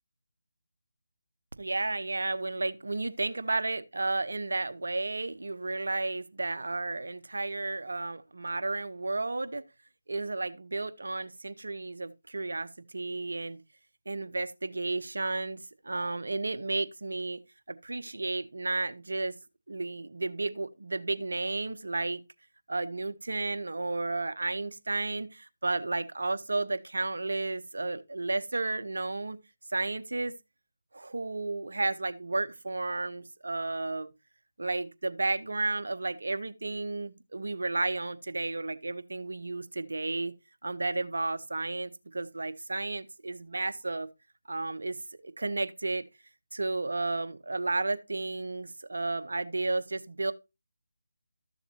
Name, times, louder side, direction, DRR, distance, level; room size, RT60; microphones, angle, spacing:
voice 1, 1.6-9.6 10.1-13.6 14.1-15.6 15.8-17.4 17.7-19.3 19.7-22.2 22.7-29.4 29.7-30.3 30.9-34.1 34.6-40.3 40.6-44.1 44.5-45.0 45.2-46.1 46.5-50.3, right 2 dB, 70° right, 0.9 m, -32 dB
13.0 x 7.0 x 2.8 m
figure-of-eight pair, 160°, 0 cm